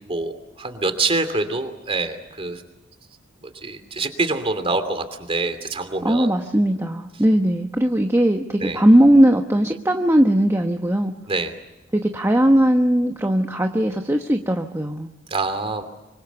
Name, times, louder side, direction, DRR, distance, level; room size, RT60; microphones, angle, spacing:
voice 1, 0.1-2.6 3.4-6.3 8.6-8.8 11.3-11.5 15.3-15.8, right 3 dB, 30° right, 9 dB, 2.8 m, -25 dB
voice 2, 6.0-11.1 11.9-15.1, right 1 dB, 15° right, 4 dB, 1.0 m, -18 dB
25.0 x 24.5 x 7.1 m, 1.0 s
head